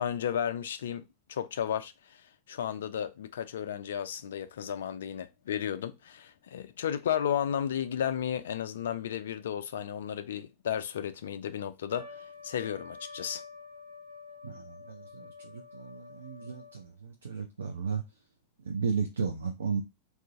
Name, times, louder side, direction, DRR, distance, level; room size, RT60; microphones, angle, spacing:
voice 1, 0.0-2.2 2.5-13.4, left 9 dB, 60° left, 0.3 m, -33 dB
Trumpet, 11.9-16.9, left 4 dB, 85° right, 0.8 m, -48 dB
voice 2, 14.4-18.0 18.6-19.8, right 5 dB, 70° right, 0.4 m, -34 dB
2.4 x 2.2 x 3.7 m
figure-of-eight pair, 90°, 0 cm